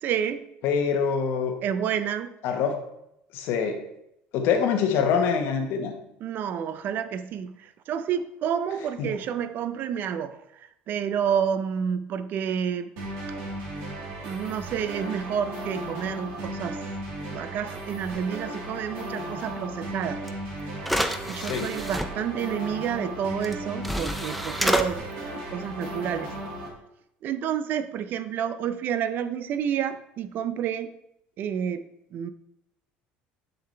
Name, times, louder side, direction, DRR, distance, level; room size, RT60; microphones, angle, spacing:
voice 1, 0.0-0.4 1.6-2.4 6.2-12.9 14.2-16.8 17.3-20.3 21.3-25.0 25.3-26.3 27.2-30.9 31.4-31.8 32.1-32.3, right 8 dB, 55° right, 12 dB, 0.5 m, -29 dB
voice 2, 0.6-1.5 2.4-2.8 3.3-3.8 4.3-5.9 9.0-9.1 21.4-21.7, left 6 dB, 70° left, 5 dB, 1.2 m, -25 dB
sound 1, 13.0-26.7, right 1 dB, 75° right, 2.1 m, -36 dB
sound 2, 20.3-20.4 20.8-22.1 23.4-23.5 23.8-24.9, equal, ahead, 0.5 m, -27 dB
6.7 x 5.9 x 3.3 m, 0.79 s
supercardioid pair, 110°, 4 cm